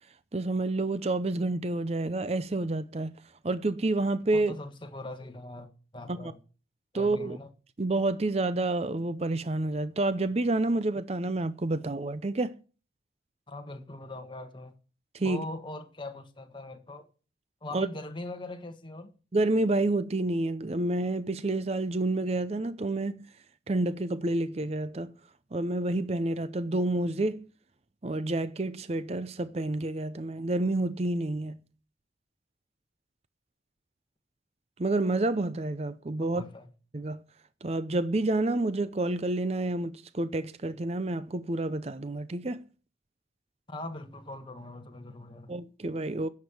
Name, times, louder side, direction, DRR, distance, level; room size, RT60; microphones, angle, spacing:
voice 1, 0.3-3.1 3.4-4.5 6.1-6.3 6.9-7.4 7.8-12.5 15.1-15.5 17.7-17.9 19.3-23.2 23.7-25.1 25.5-27.5 28.0-31.6 34.8-36.4 36.9-37.2 37.6-42.6 45.5-46.3, right 2 dB, 35° right, 0.6 m, -29 dB
voice 2, 4.3-6.4 6.9-7.5 13.5-14.7 15.2-17.1 17.6-19.1 36.3-36.7 43.7-45.5, left 2 dB, 25° left, 1.4 m, -41 dB
10.5 x 7.4 x 7.9 m
head